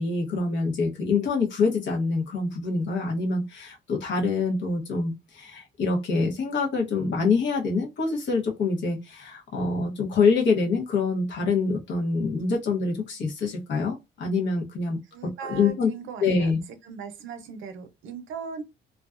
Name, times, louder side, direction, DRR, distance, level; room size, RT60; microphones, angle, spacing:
voice 1, 0.0-15.0 15.4-15.9 16.2-16.6, left 4 dB, 70° left, 0.9 m, -25 dB
voice 2, 15.1-16.5 16.8-18.6, right 6 dB, 75° right, 0.6 m, -38 dB
2.4 x 2.2 x 2.3 m
cardioid pair, 90°, 20 cm